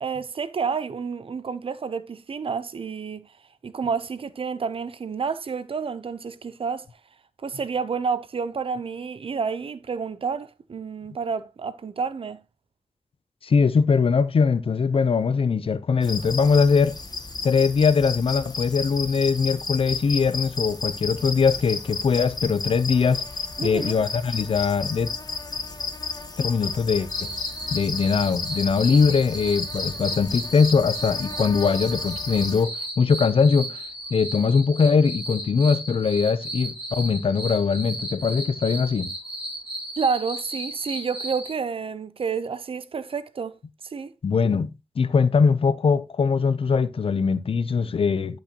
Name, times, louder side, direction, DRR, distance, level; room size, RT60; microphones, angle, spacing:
voice 1, 0.0-3.3 3.6-6.9 7.4-12.4 23.6-23.9 40.0-43.6 43.8-44.1, right 5 dB, 80° right, 0.6 m, -29 dB
voice 2, 13.4-17.0 17.4-23.2 23.6-25.1 26.4-27.3 27.7-33.8 34.1-39.1 44.2-44.7 45.0-48.4, left 5 dB, 85° left, 0.6 m, -21 dB
sound 1, 16.0-32.6, left 4 dB, 45° left, 1.2 m, -33 dB
sound 2, 27.1-41.5, right 1 dB, 5° right, 4.6 m, -35 dB
10.5 x 6.2 x 2.9 m
wide cardioid pair, 70°, 9 cm